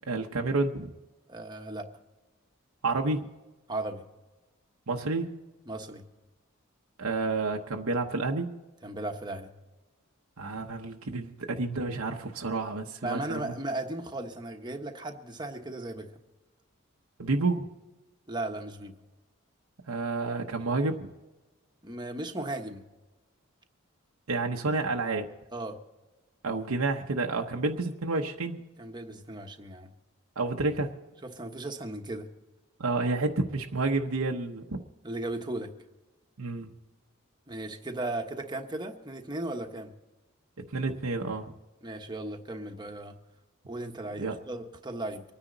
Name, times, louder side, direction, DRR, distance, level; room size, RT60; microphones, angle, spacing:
voice 1, 0.1-0.9 2.8-3.3 4.9-5.3 7.0-8.5 10.4-13.5 17.2-17.7 19.9-21.1 24.3-25.3 26.4-28.6 30.4-30.9 32.8-34.8 36.4-36.7 40.6-41.5 44.2-44.3, right 3 dB, 80° right, 2 dB, 0.9 m, -30 dB
voice 2, 1.3-1.9 3.7-4.0 5.7-6.0 8.8-9.5 13.0-16.1 18.3-18.9 21.8-22.8 25.5-25.8 28.8-29.9 31.2-32.3 35.0-35.7 37.5-39.9 41.8-43.1 43.7-45.2, right 2 dB, 20° right, 4 dB, 1.2 m, -36 dB
25.0 x 9.9 x 4.0 m, 1.1 s
head